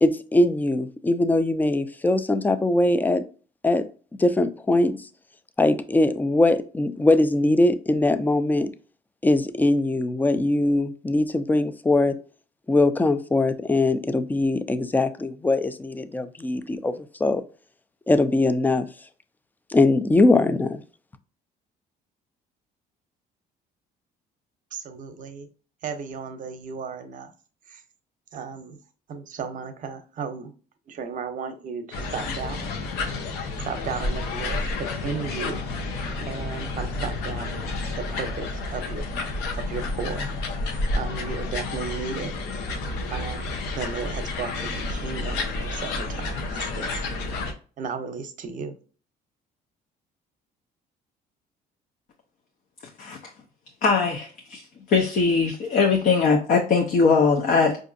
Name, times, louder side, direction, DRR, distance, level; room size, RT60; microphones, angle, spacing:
voice 1, 0.0-3.2 3.6-3.9 4.2-5.0 5.6-8.7 9.2-12.2 12.7-16.9 17.2-17.4 18.1-18.9 19.7-20.8, left 2 dB, 10° left, 0.3 m, -21 dB
voice 2, 24.7-25.5 25.8-27.3 27.7-27.8 28.3-28.8 29.1-30.5 30.9-32.8 33.6-35.6 36.0-40.3 40.7-42.3 43.1-47.0 47.8-48.8, right 5 dB, 50° right, 0.7 m, -35 dB
sound 1, 31.9-47.5, left 3 dB, 85° left, 0.8 m, -30 dB
voice 3, 53.8-54.6 54.9-57.8, left 4 dB, 55° left, 0.6 m, -20 dB
4.7 x 2.6 x 2.5 m
cardioid pair, 110°, 17 cm